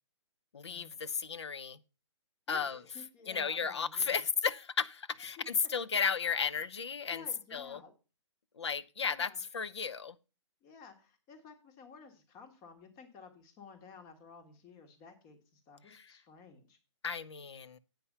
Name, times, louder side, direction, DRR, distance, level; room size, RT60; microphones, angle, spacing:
voice 1, 0.5-1.8 2.5-2.8 3.3-7.2 7.5-7.8 8.6-10.2 15.9-16.0 17.0-17.8, left 6 dB, 65° left, 0.7 m, -34 dB
voice 2, 2.5-4.3 5.4-5.5 7.1-7.9 9.0-9.4 10.6-16.8, left 5 dB, 25° left, 1.5 m, -53 dB
8.8 x 5.4 x 6.5 m
figure-of-eight pair, 130°, 15 cm